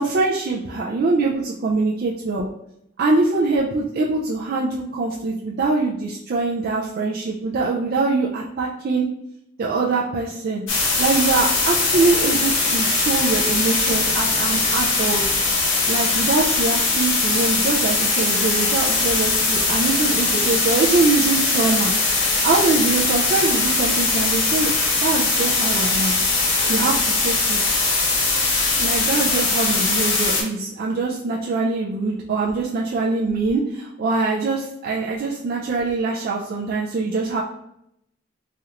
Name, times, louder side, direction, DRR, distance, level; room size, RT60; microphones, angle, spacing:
voice 1, 0.0-2.4 3.0-9.1 9.6-10.6 11.0-15.2 15.9-21.9 22.4-26.2 26.7-27.6 28.8-37.4, right 3 dB, 50° right, -3 dB, 0.3 m, -23 dB
sound 1, 10.7-30.4, left 3 dB, 80° left, 0.8 m, -20 dB
3.2 x 2.4 x 2.8 m, 0.78 s
head